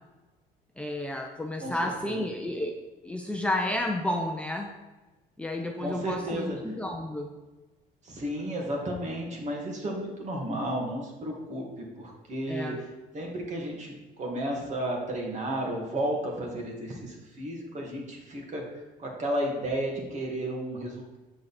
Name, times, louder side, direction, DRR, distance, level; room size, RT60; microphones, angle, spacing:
voice 1, 0.8-2.7 3.0-4.7 5.4-7.3 12.5-12.8, left 1 dB, 5° left, 2 dB, 0.7 m, -31 dB
voice 2, 5.8-6.6 8.0-12.9 13.1-18.6 19.0-21.2, right 1 dB, 45° right, 0 dB, 2.3 m, -33 dB
8.1 x 6.2 x 4.3 m, 1.2 s
cardioid pair, 110°, 17 cm